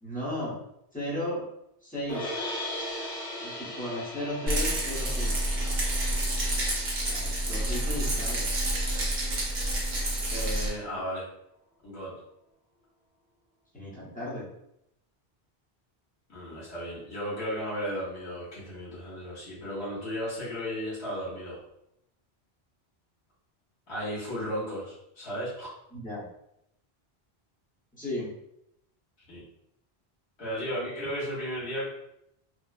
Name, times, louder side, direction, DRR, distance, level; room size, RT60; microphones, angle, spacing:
voice 1, 0.0-0.6 0.9-1.5 1.8-2.4 3.4-5.5 7.1-8.4 13.7-14.5 25.9-26.3 27.9-28.3, left 1 dB, 10° left, -8 dB, 0.7 m, -35 dB
sound 1, 2.1-8.2, left 1 dB, 55° left, 0.9 m, -39 dB
Rattle, 4.5-10.7, right 1 dB, 50° right, 0.7 m, -28 dB
voice 2, 10.3-11.2 11.8-12.1 16.3-21.6 23.9-25.7 29.3-29.4 30.4-31.9, equal, 80° left, -9 dB, 1.4 m, -34 dB
3.0 x 2.0 x 2.3 m, 0.78 s
omnidirectional pair, 1.1 m